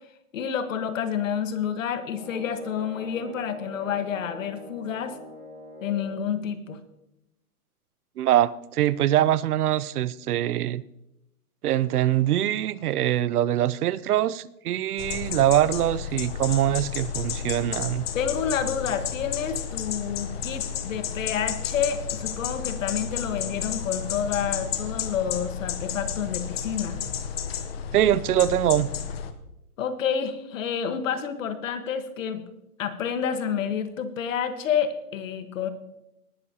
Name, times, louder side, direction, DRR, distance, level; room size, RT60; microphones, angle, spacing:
voice 1, 0.3-5.2 5.8-6.8 18.1-27.0 29.8-32.4 32.8-35.7, left 8 dB, 55° left, 1.4 m, -29 dB
sound 1, 2.0-6.3, left 1 dB, 10° right, 4.7 m, -43 dB
voice 2, 8.2-10.8 11.6-18.1 27.9-28.9, right 12 dB, 75° right, 0.7 m, -23 dB
sound 2, 15.0-29.3, left 7 dB, 40° left, 0.9 m, -32 dB
19.0 x 11.5 x 2.9 m
hypercardioid pair, 165°, 45 cm